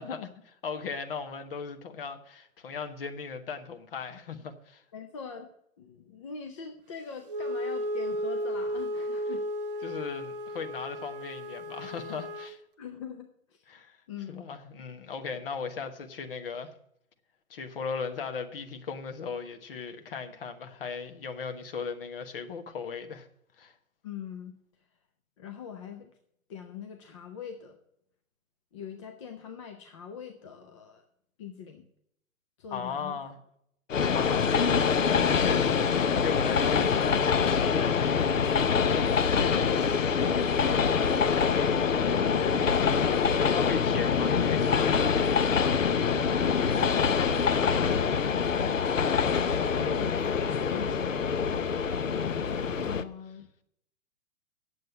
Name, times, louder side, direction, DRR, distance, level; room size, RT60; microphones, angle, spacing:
voice 1, 0.0-4.8 9.3-9.4 9.8-12.6 13.7-14.0 14.3-16.7 17.5-23.3 23.6-23.7 32.7-33.4 34.0-38.0 43.4-45.8, left 5 dB, 40° left, 1.3 m, -37 dB
voice 2, 4.9-5.5 5.8-9.4 12.8-13.6 14.1-14.5 15.3-15.4 24.0-24.6 25.4-26.1 26.5-27.8 28.7-31.0 31.4-31.8 32.6-33.2 39.4-40.5 46.6-48.8 49.1-51.3 52.8-53.5, left 7 dB, 20° left, 0.6 m, -43 dB
Wind instrument woodwind instrument, 7.3-12.6, equal, 40° right, 0.8 m, -34 dB
Train, 33.9-53.0, left 6 dB, 65° left, 0.9 m, -25 dB
9.3 x 7.7 x 6.2 m
figure-of-eight pair, 125°, 42 cm